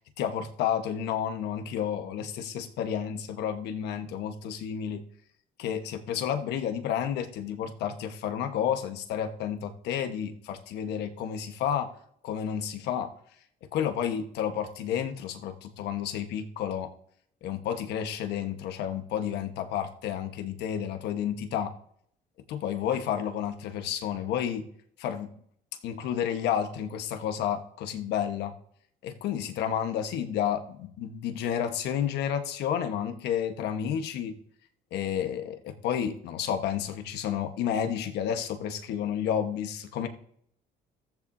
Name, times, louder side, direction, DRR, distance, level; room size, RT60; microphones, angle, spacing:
voice 1, 0.2-5.0 5.6-11.9 12.2-13.1 13.7-16.9 17.4-21.7 22.5-24.6 25.0-25.3 25.8-28.5 29.0-34.4 34.9-40.1, left 9 dB, 80° left, 7 dB, 1.3 m, -31 dB
14.5 x 14.5 x 2.7 m, 0.67 s
cardioid pair, 110°, 17 cm